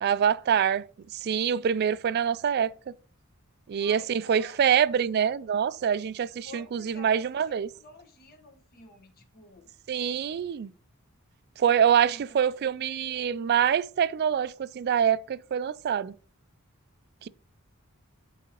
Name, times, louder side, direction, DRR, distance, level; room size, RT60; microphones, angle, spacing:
voice 1, 0.0-0.8 1.1-2.7 3.7-7.7 9.9-10.7 11.6-16.1 17.2-17.3, right 8 dB, 50° right, 0.3 m, -25 dB
voice 2, 3.8-4.6 6.4-9.7 11.9-12.4, left 2 dB, 45° left, 1.3 m, -50 dB
12.0 x 3.9 x 2.9 m
head